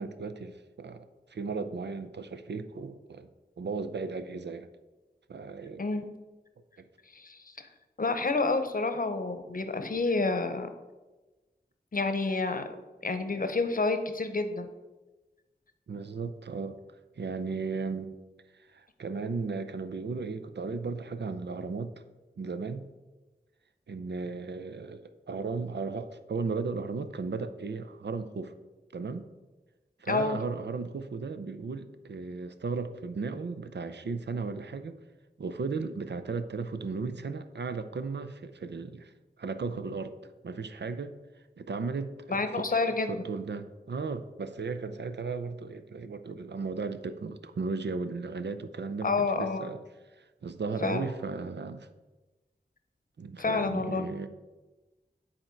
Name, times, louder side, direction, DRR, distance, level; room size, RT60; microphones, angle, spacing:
voice 1, 0.0-3.3 3.6-4.7 5.3-5.8 6.8-6.9 15.9-16.8 17.2-18.1 18.5-21.9 22.4-22.9 23.9-28.5 28.9-29.3 30.0-35.0 35.4-39.1 39.4-40.1 40.4-41.2 41.6-49.8 50.2-51.9 53.2-54.3, right 4 dB, 80° right, 10 dB, 0.5 m, -35 dB
voice 2, 8.0-10.7 11.9-12.6 13.0-14.7 30.1-30.4 42.3-43.2 49.0-49.7 50.8-51.1 53.4-54.1, left 3 dB, 55° left, 8 dB, 0.8 m, -29 dB
10.0 x 4.3 x 4.5 m, 1.2 s
wide cardioid pair, 65°, 18 cm